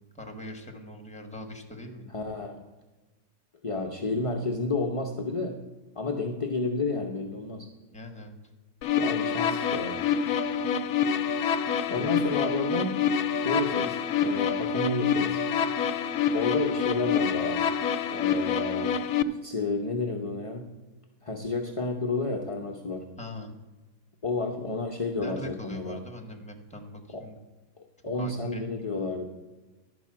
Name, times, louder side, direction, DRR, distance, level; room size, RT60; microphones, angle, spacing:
voice 1, 0.1-2.1 7.9-8.4 11.9-12.1 16.9-17.1 23.2-23.5 25.2-27.4 28.2-28.8, left 1 dB, 5° left, 3 dB, 1.3 m, -42 dB
voice 2, 2.1-2.6 3.6-5.6 5.9-7.7 9.0-10.0 11.9-13.0 13.4-15.4 16.3-17.6 18.1-18.9 19.3-20.7 21.2-23.0 24.2-26.0 27.1-27.2 27.8-29.2, left 3 dB, 30° left, 0 dB, 0.6 m, -31 dB
sound 1, 8.8-19.2, left 7 dB, 70° left, 1.0 m, -27 dB
11.5 x 5.2 x 7.4 m, 1.2 s
omnidirectional pair, 1.7 m